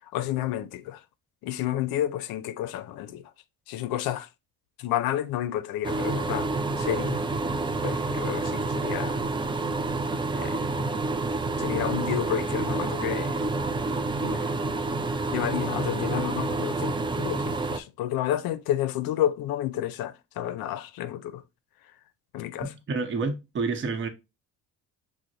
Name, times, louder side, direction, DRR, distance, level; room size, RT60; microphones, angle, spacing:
voice 1, 0.1-1.0 1.4-3.2 3.7-4.3 4.8-6.5 6.8-7.2 7.8-9.2 10.3-10.9 11.6-13.5 14.0-14.5 15.3-21.4 22.3-22.7, left 12 dB, 85° left, 0.5 m, -30 dB
sound 1, 5.8-17.8, right 3 dB, 15° right, 0.3 m, -28 dB
voice 2, 22.6-24.1, right 4 dB, 35° right, 0.8 m, -29 dB
6.1 x 2.0 x 3.8 m
cardioid pair, 110°, 35 cm